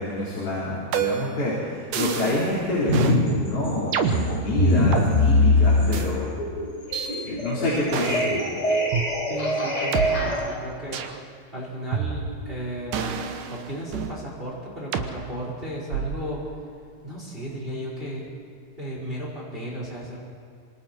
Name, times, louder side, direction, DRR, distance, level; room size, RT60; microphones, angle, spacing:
voice 1, 0.0-6.3 7.2-8.4, left 1 dB, 45° left, -7 dB, 5.4 m, -27 dB
sound 1, 0.9-1.4 1.9-2.5 2.9-3.2 3.9-5.1 5.9-6.1 6.9-7.1 7.9-8.3 8.9-9.0 9.9-10.1 10.9-11.2 11.9-12.5 12.9-14.2 14.9-15.1 15.9-16.3, right 6 dB, 85° right, 2.8 m, -28 dB
sound 2, 2.9-3.3 3.6-10.5, left 1 dB, 20° left, 4.1 m, -23 dB
voice 2, 9.3-11.0 11.5-13.2 13.5-16.4 17.0-18.3 18.8-20.2, right 1 dB, 15° right, -4 dB, 5.0 m, -34 dB
27.0 x 26.0 x 4.6 m, 2.4 s
omnidirectional pair, 3.6 m